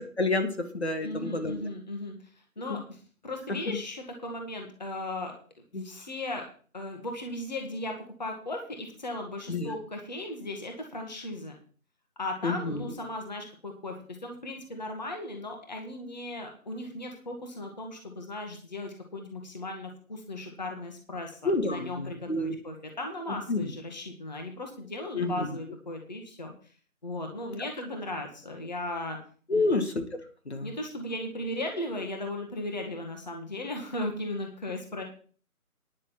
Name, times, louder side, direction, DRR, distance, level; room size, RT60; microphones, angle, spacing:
voice 1, 0.2-1.5 3.7-3.8 5.7-5.8 9.5-9.7 12.4-12.9 21.4-22.6 23.5-23.7 25.1-25.5 29.5-30.0 30.5-30.7, left 2 dB, 45° left, 6 dB, 2.0 m, -28 dB
voice 2, 1.0-2.2 2.6-5.3 5.8-6.5 6.7-11.6 12.2-26.5 27.0-29.2 29.5-29.7 30.6-35.0, left 1 dB, 30° left, 3 dB, 1.9 m, -37 dB
10.5 x 6.4 x 7.7 m, 0.42 s
figure-of-eight pair, 175°, 44 cm